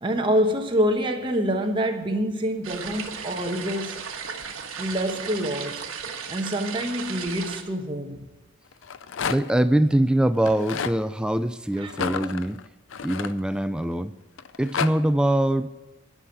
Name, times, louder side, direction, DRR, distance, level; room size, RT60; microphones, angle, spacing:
voice 1, 0.0-4.1 4.8-5.9 6.3-8.3 11.8-11.9, equal, 25° right, 3 dB, 1.1 m, -26 dB
sound 1, 2.6-7.6, right 6 dB, 70° right, 1.3 m, -35 dB
Rattle, 8.7-9.6 10.4-11.0 11.9-13.8 14.4-14.9, left 6 dB, 60° left, 0.5 m, -31 dB
voice 2, 9.3-12.6 13.0-14.1 14.6-15.7, right 1 dB, 5° right, 12 dB, 0.3 m, -23 dB
11.5 x 6.2 x 9.2 m, 1.1 s
head